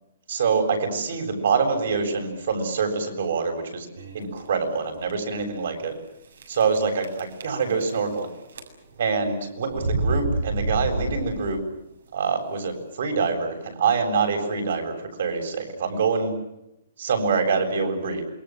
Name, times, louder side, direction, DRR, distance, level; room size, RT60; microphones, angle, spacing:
voice 1, 0.3-3.9 4.1-5.9 6.5-8.3 9.0-11.6 12.1-16.3 17.0-18.2, right 5 dB, 60° right, 5 dB, 7.7 m, -25 dB
sound 1, 4.0-4.4 5.0-5.1 5.4-5.5 6.4-6.8 7.0-8.2 8.5-9.0 9.7-11.6, right 2 dB, 75° right, 7.2 m, -28 dB
27.5 x 23.0 x 7.8 m, 0.86 s
hypercardioid pair, 170°, 0 cm